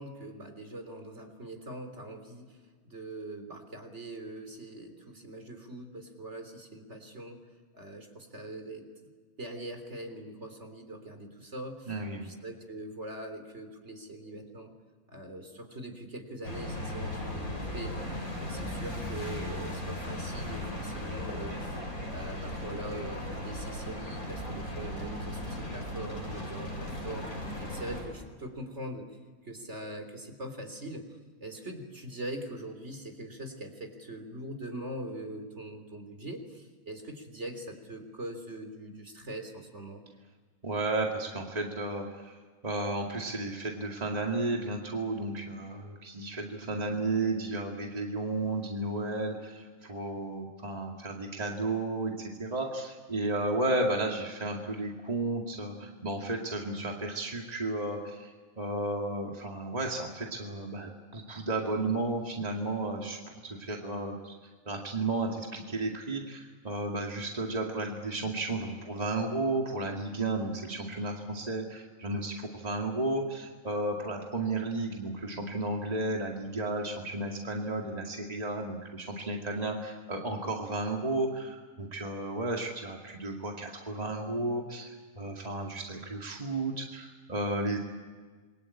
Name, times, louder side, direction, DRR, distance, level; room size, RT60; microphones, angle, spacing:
voice 1, 0.0-2.6 2.8-7.4 7.7-8.9 9.4-11.9 12.2-14.7 15.1-18.1 18.4-21.8 22.1-27.3 27.6-29.2 29.4-31.1 31.4-40.0, right 1 dB, 50° right, 6 dB, 3.8 m, -42 dB
voice 2, 11.9-12.4 40.6-42.4 42.6-63.2 63.4-64.3 64.7-84.9 85.2-87.8, right 2 dB, 25° right, 0 dB, 2.3 m, -33 dB
sound 1, 16.4-28.0, left 1 dB, 90° left, 7.4 m, -37 dB
27.5 x 23.0 x 8.7 m, 1.5 s
omnidirectional pair, 1.5 m